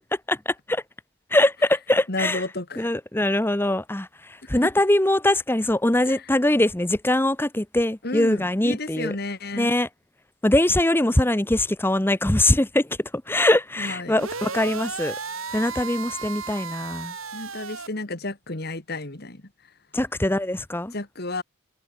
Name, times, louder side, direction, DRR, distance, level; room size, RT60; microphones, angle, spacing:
voice 1, 0.3-0.8 1.3-2.4 2.8-9.1 9.5-9.9 10.4-15.2 15.5-17.1 19.9-20.9, left 1 dB, 10° left, 0.8 m, -22 dB
voice 2, 2.1-2.9 4.6-4.7 6.1-6.3 8.0-9.7 13.8-14.2 17.3-19.7 20.9-21.4, left 2 dB, 50° left, 2.2 m, -32 dB
sound 1, 14.1-17.9, right 5 dB, 90° right, 4.9 m, -34 dB
head